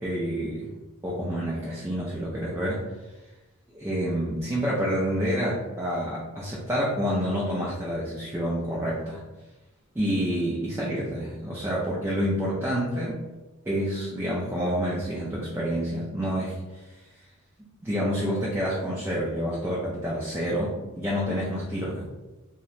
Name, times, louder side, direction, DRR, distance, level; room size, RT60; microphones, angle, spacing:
voice 1, 0.0-0.7 1.0-2.8 3.7-9.2 10.0-13.2 13.7-16.8 17.8-22.0, equal, 10° right, -7 dB, 0.3 m, -28 dB
2.8 x 2.1 x 2.4 m, 1.1 s
head